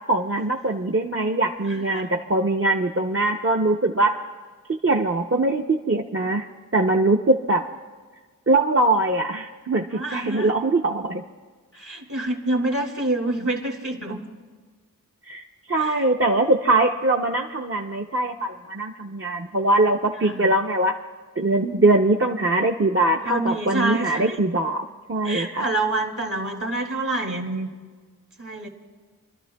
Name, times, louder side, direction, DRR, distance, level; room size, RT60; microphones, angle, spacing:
voice 1, 0.1-4.1 4.8-6.5 6.7-7.6 8.5-11.2 15.2-20.9 21.4-24.8 25.1-25.6, right 2 dB, 40° right, 0 dB, 0.6 m, -22 dB
voice 2, 1.7-2.0 9.9-10.5 11.7-14.2 15.8-15.9 20.2-20.5 23.3-24.4 25.2-27.7 28.4-28.7, right 2 dB, 60° right, 2 dB, 2.1 m, -27 dB
29.5 x 12.5 x 2.2 m, 1.5 s
wide cardioid pair, 55°, 34 cm